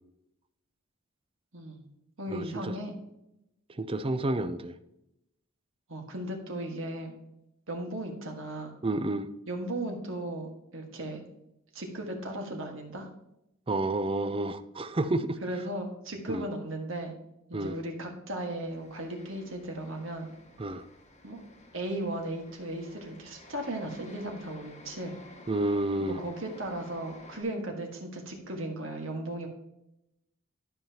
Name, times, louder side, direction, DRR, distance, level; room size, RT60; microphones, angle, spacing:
voice 1, 1.5-1.9 2.2-3.0 5.9-7.1 7.7-8.7 9.5-11.2 11.7-13.1 15.4-17.1 17.5-20.3 21.2-21.4 21.7-25.2 26.0-29.5, right 1 dB, 65° right, 2 dB, 1.6 m, -36 dB
voice 2, 2.3-2.7 3.8-4.7 8.8-9.3 13.7-15.4 16.3-16.5 17.5-17.8 20.6-20.9 25.5-26.2, right 2 dB, 25° right, 12 dB, 0.5 m, -30 dB
sound 1, 18.7-27.4, left 2 dB, 35° left, 1.1 m, -52 dB
12.0 x 5.6 x 2.9 m, 0.85 s
head